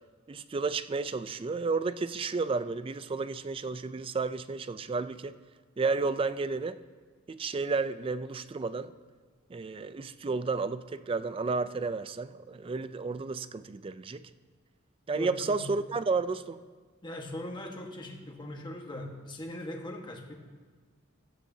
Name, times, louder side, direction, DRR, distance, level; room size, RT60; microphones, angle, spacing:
voice 1, 0.3-5.4 5.8-6.8 7.3-8.9 9.5-14.3 15.1-16.6, right 4 dB, 25° right, 14 dB, 0.3 m, -32 dB
voice 2, 15.1-15.7 17.0-20.3, left 1 dB, 25° left, 2 dB, 1.3 m, -40 dB
16.0 x 13.0 x 2.7 m, 1.5 s
head